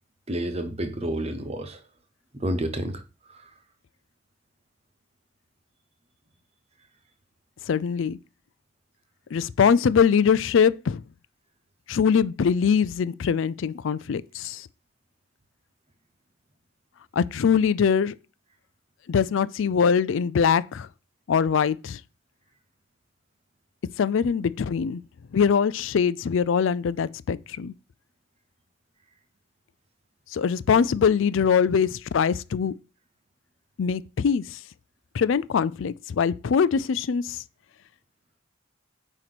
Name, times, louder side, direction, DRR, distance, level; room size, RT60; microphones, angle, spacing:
voice 1, 0.3-1.8 2.4-3.0 3.3-3.5, right 1 dB, 30° right, 1.0 m, -29 dB
voice 2, 7.7-8.2 9.3-11.0 11.9-14.7 17.1-18.1 19.1-20.9 21.3-22.0 24.0-25.0 25.3-27.7 30.3-32.7 33.8-34.6 35.1-37.4, left 6 dB, 70° left, 0.4 m, -22 dB
8.9 x 3.0 x 6.0 m
head